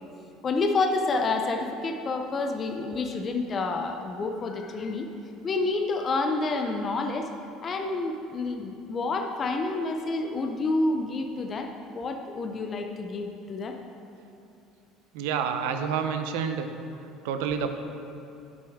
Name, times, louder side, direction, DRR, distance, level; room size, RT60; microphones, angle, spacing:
voice 1, 0.4-5.1 5.4-7.3 7.6-11.7 11.9-13.8, left 3 dB, 30° left, 4 dB, 0.5 m, -28 dB
voice 2, 15.1-16.7 17.2-17.7, right 7 dB, 90° right, 7 dB, 0.6 m, -28 dB
10.5 x 6.1 x 3.5 m, 2.8 s
cardioid pair, 130°, 0 cm